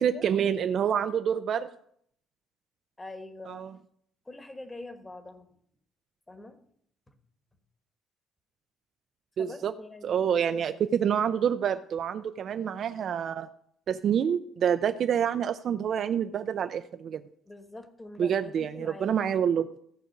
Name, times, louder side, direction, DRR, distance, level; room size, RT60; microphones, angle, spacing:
voice 1, 0.0-1.7 3.5-3.7 9.4-9.7 10.0-13.5 13.9-17.2 18.2-19.7, right 8 dB, 45° right, 9 dB, 0.4 m, -27 dB
voice 2, 3.0-3.6 4.2-5.5 6.3-6.6 9.4-10.2 17.5-19.1, left 2 dB, 15° left, 8 dB, 1.2 m, -44 dB
15.0 x 5.0 x 6.5 m, 0.67 s
cardioid pair, 145°, 0 cm